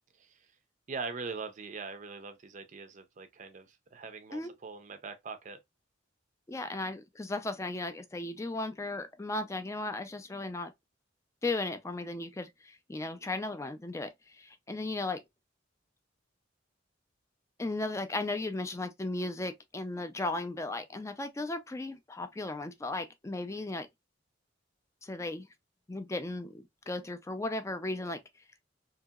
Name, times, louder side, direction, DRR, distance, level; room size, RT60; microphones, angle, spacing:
voice 1, 0.9-5.6, right 4 dB, 40° right, 0.5 m, -42 dB
voice 2, 6.5-10.7 11.4-14.1 14.4-15.2 17.6-23.9 25.0-25.5 25.9-28.2, left 2 dB, 15° left, 0.4 m, -36 dB
2.8 x 2.8 x 2.3 m
head